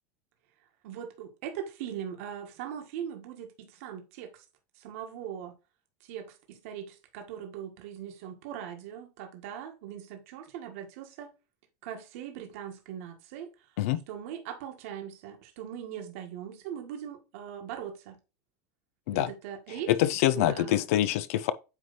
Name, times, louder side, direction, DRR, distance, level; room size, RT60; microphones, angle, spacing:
voice 1, 0.8-4.4 4.8-5.6 6.0-11.3 11.8-13.5 14.1-18.2 19.1-19.9 20.3-20.8, right 9 dB, 65° right, 1.7 m, -40 dB
voice 2, 19.9-21.5, left 13 dB, 70° left, 0.6 m, -25 dB
9.0 x 3.3 x 4.1 m
supercardioid pair, 155°, 8 cm